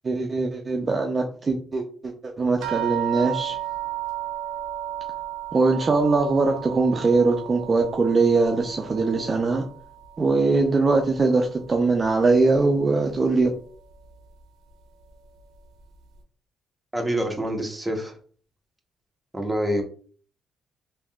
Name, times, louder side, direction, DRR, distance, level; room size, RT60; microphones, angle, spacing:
voice 1, 0.0-3.6 5.5-9.6 10.2-13.5, right 3 dB, 35° right, 2 dB, 0.4 m, -21 dB
sound 1, 2.6-11.4 11.8-12.6 13.4-13.5 13.9-14.1, right 13 dB, 90° right, 0.5 m, -34 dB
voice 2, 16.9-18.2 19.3-19.8, equal, 5° right, 1 dB, 0.8 m, -26 dB
3.4 x 2.6 x 2.3 m, 0.43 s
cardioid pair, 90°, 0 cm